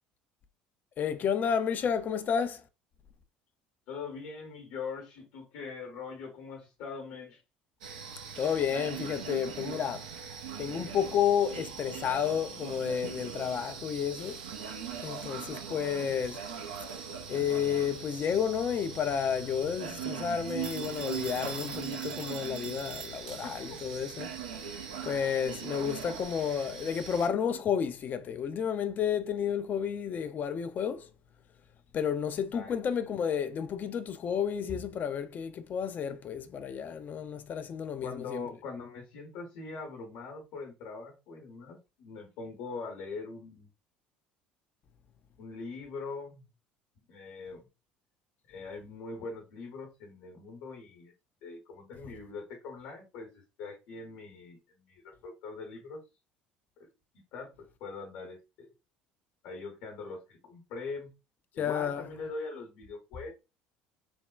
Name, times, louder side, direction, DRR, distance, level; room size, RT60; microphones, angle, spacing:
voice 1, 1.0-2.6 8.4-10.1 10.6-14.4 15.0-16.4 17.3-24.3 25.0-31.1 31.9-38.5 61.6-62.1, left 8 dB, 40° left, 0.4 m, -31 dB
voice 2, 3.9-7.4 21.0-21.1 23.4-23.8 32.5-32.8 38.0-43.7 45.4-46.5 47.0-47.7 48.5-51.1 51.4-56.0 56.8-56.9 57.3-58.7 59.4-61.1 61.5-63.3, left 4 dB, 65° left, 0.8 m, -42 dB
sound 1, 7.8-27.3, right 7 dB, 80° right, 0.4 m, -41 dB
Telephone, 20.6-23.6, right 5 dB, 30° right, 0.6 m, -44 dB
3.3 x 2.1 x 2.3 m
hypercardioid pair, 60°, 5 cm